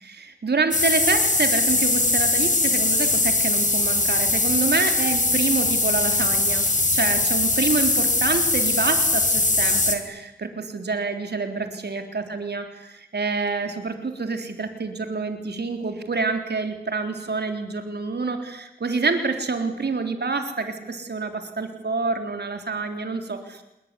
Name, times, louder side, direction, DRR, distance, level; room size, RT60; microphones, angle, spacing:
voice 1, 0.0-6.7 6.9-23.6, right 4 dB, 85° right, 6 dB, 3.7 m, -27 dB
sound 1, 0.7-10.0, left 2 dB, 50° left, 4.3 m, -21 dB
26.5 x 22.0 x 9.9 m, 0.91 s
cardioid pair, 40°, 17 cm